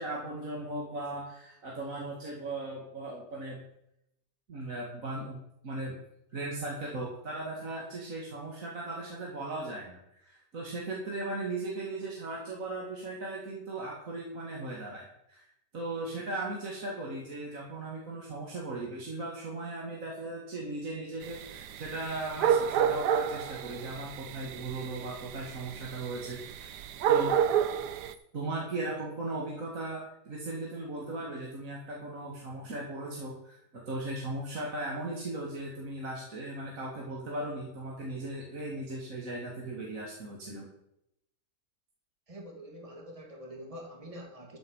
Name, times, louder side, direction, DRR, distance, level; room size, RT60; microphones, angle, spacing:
voice 1, 0.0-3.6 4.5-5.9 6.3-15.5 15.7-26.7 27.1-27.4 28.3-40.7, right 2 dB, 50° right, -3 dB, 2.4 m, -37 dB
sound 1, 21.2-28.1, right 8 dB, 80° right, 1.3 m, -30 dB
voice 2, 42.3-44.6, equal, 20° right, 1 dB, 2.4 m, -45 dB
13.5 x 8.0 x 5.5 m, 0.79 s
omnidirectional pair, 1.8 m